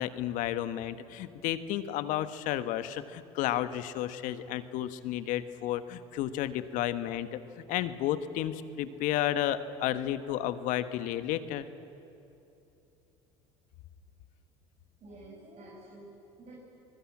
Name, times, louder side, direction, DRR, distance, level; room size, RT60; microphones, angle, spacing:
voice 1, 0.0-11.7, left 12 dB, 65° left, 11 dB, 1.3 m, -32 dB
voice 2, 15.0-16.5, right 2 dB, 50° right, -2 dB, 6.0 m, -50 dB
24.0 x 21.0 x 8.7 m, 2.8 s
hypercardioid pair, 75°, 14 cm